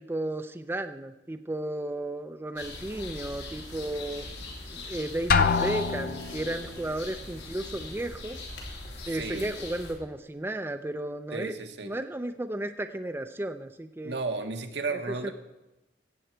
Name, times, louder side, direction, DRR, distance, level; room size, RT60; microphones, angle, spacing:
voice 1, 0.0-4.3 4.7-8.4 9.1-11.5 11.8-14.1 14.9-15.3, right 1 dB, 15° right, 8 dB, 0.4 m, -34 dB
sound 1, 2.6-9.9, left 2 dB, 85° left, 2.9 m, -41 dB
Drum, 5.3-6.5, left 5 dB, 55° left, 0.5 m, -24 dB
voice 2, 9.1-9.5 11.3-11.9 14.0-15.3, right 3 dB, 75° right, 5 dB, 1.2 m, -33 dB
17.0 x 7.7 x 4.5 m, 1.0 s
head